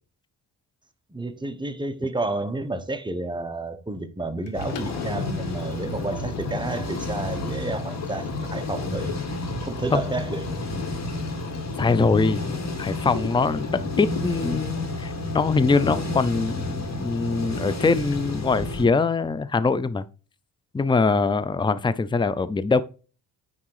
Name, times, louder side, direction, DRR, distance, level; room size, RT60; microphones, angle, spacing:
voice 1, 1.1-9.1 9.6-10.6, right 2 dB, 10° right, 1.1 m, -31 dB
Liquid, 4.5-18.6, left 7 dB, 85° left, 1.5 m, -39 dB
sound 1, 4.5-18.8, left 1 dB, 40° left, 2.5 m, -31 dB
voice 2, 11.8-20.0 20.7-22.8, left 4 dB, 10° left, 0.5 m, -23 dB
9.7 x 3.7 x 4.8 m
cardioid pair, 95°, 42 cm